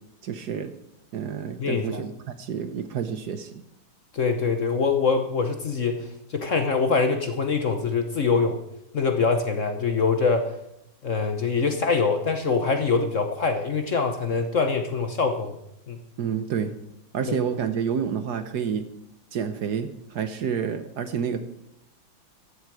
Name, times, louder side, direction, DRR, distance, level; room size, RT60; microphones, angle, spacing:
voice 1, 0.2-0.7 1.1-2.1 2.4-3.6 16.2-16.7 17.1-18.8 19.3-21.4, right 7 dB, 60° right, 10 dB, 1.3 m, -29 dB
voice 2, 1.6-2.0 4.1-8.6 8.9-10.5 11.0-15.5 15.9-16.0 17.3-17.4, left 4 dB, 45° left, 6 dB, 1.1 m, -24 dB
14.5 x 12.0 x 4.8 m, 0.82 s
omnidirectional pair, 2.2 m